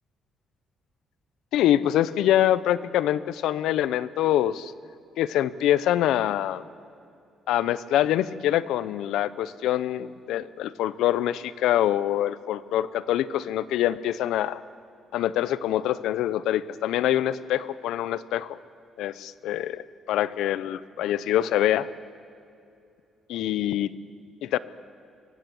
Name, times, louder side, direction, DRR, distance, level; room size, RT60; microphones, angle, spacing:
voice 1, 1.5-4.7 5.2-6.6 7.5-14.6 15.1-18.6 19.0-21.9 23.3-23.9 24.4-24.6, left 12 dB, 85° left, 16 dB, 0.6 m, -25 dB
25.0 x 16.5 x 7.7 m, 2.6 s
cardioid pair, 90°, 0 cm